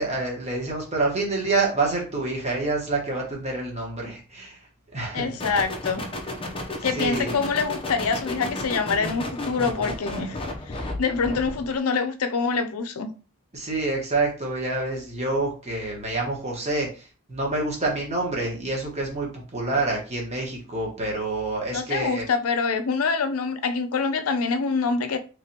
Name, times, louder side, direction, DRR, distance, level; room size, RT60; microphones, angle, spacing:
voice 1, 0.0-4.6 4.9-5.3 6.4-6.6 6.9-7.4 13.5-22.3, right 2 dB, 30° right, 1.2 m, -27 dB
voice 2, 5.1-6.0 6.8-13.1 21.7-25.2, left 5 dB, 70° left, 0.5 m, -25 dB
sound 1, 5.4-11.7, left 2 dB, 25° left, 0.6 m, -33 dB
3.4 x 3.3 x 2.8 m
head